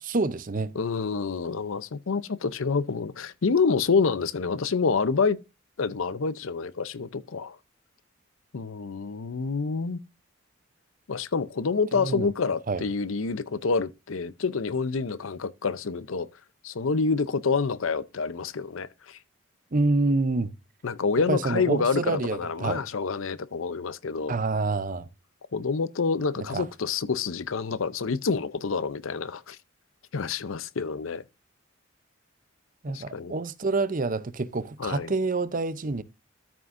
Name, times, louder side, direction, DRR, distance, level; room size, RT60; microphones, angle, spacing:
voice 1, 0.0-0.7 11.9-12.3 12.7-12.8 19.7-20.5 21.3-22.8 24.3-25.1 26.5-26.6 32.8-36.0, right 3 dB, 40° right, 0.6 m, -27 dB
voice 2, 0.7-5.4 5.8-7.6 8.5-10.0 11.1-16.3 16.6-19.2 20.8-24.4 25.5-29.6 30.1-31.2 32.9-33.3 34.8-35.1, left 4 dB, 75° left, 0.6 m, -27 dB
13.5 x 6.0 x 2.6 m
head